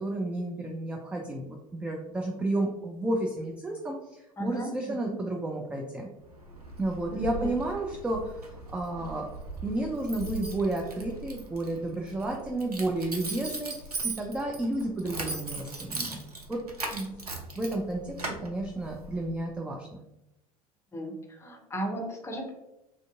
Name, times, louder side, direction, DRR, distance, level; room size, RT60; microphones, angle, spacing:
voice 1, 0.0-6.1 6.8-9.3 9.6-13.7 14.0-16.2 16.5-16.6 16.9-17.2 17.6-20.0, right 2 dB, 5° right, 0 dB, 0.3 m, -32 dB
voice 2, 4.4-5.2 7.1-7.6 20.9-22.5, right 1 dB, 15° left, 1 dB, 0.7 m, -36 dB
Keys jangling, 6.2-19.3, right 2 dB, 90° right, 0.5 m, -39 dB
3.3 x 2.5 x 2.3 m, 0.92 s
figure-of-eight pair, 75°, 19 cm